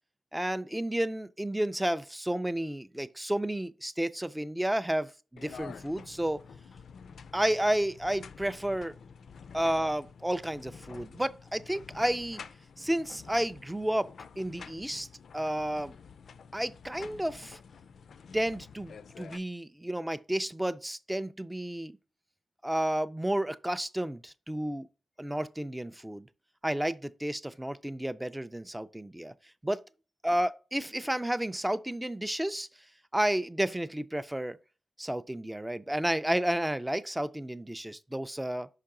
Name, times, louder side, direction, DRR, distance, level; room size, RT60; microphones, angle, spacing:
voice 1, 0.3-6.4 7.3-8.9 9.5-12.4 12.8-14.1 14.4-15.1 15.3-15.9 16.5-17.6 18.3-21.9 22.6-24.9 25.2-26.3 26.6-29.3 29.6-29.8 30.2-32.7 33.1-34.6 35.0-38.7, right 1 dB, 5° right, 0.3 m, -31 dB
sound 1, 5.4-19.4, left 6 dB, 65° left, 0.4 m, -49 dB
5.7 x 5.2 x 3.7 m
wide cardioid pair, 145°, 0 cm